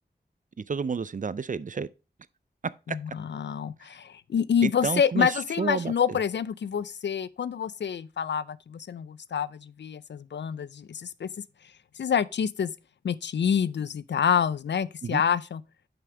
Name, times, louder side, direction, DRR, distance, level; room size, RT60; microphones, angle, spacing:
voice 1, 0.6-1.9 4.6-6.2 15.0-15.2, right 5 dB, 45° right, 0.4 m, -30 dB
voice 2, 2.9-11.3 12.0-12.7 13.0-15.6, left 7 dB, 75° left, 0.4 m, -27 dB
5.9 x 5.2 x 4.7 m
cardioid pair, 40°, 18 cm